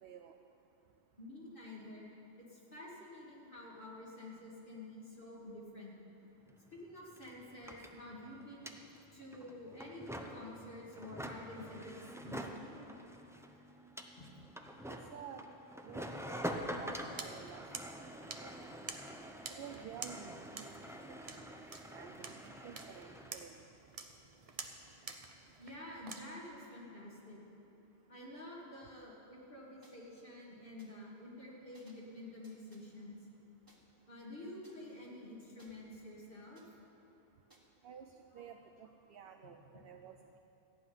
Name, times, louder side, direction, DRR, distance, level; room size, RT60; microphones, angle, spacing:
voice 1, 0.0-0.3 14.8-15.5 15.8-18.0 18.4-18.5 18.9-19.0 19.5-20.7 21.9-23.6 37.8-40.4, right 8 dB, 65° right, 5 dB, 0.8 m, -51 dB
voice 2, 1.2-2.1 2.4-5.9 6.7-8.7 9.1-11.9 12.2-12.8 14.2-14.3 25.6-27.4 28.1-33.2 34.1-36.6, left 1 dB, 55° left, -6 dB, 2.5 m, -49 dB
sound 1, 6.5-6.6 6.8-23.4, equal, 5° right, 0.5 m, -46 dB
sound 2, 17.2-26.2, right 4 dB, 40° right, 0.8 m, -50 dB
sound 3, 29.8-30.0 30.8-30.9 31.7-32.1 32.4-32.9 33.7-33.8 34.6-35.7 36.5-36.7 37.5-37.6, right 1 dB, 20° right, 1.5 m, -66 dB
14.5 x 6.1 x 9.5 m, 2.9 s
omnidirectional pair, 1.1 m